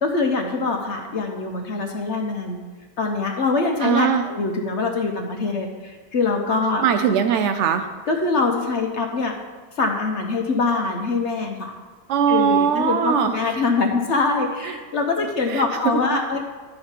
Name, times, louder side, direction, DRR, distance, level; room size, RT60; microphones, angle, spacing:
voice 1, 0.0-2.6 3.0-6.8 8.1-9.3 9.8-11.7 12.3-16.4, left 3 dB, 50° left, 3 dB, 1.0 m, -23 dB
voice 2, 3.8-4.2 6.8-7.9 12.1-13.5 14.6-14.7 15.2-16.0, right 7 dB, 85° right, 7 dB, 0.6 m, -21 dB
10.5 x 6.6 x 4.4 m, 1.4 s
omnidirectional pair, 1.8 m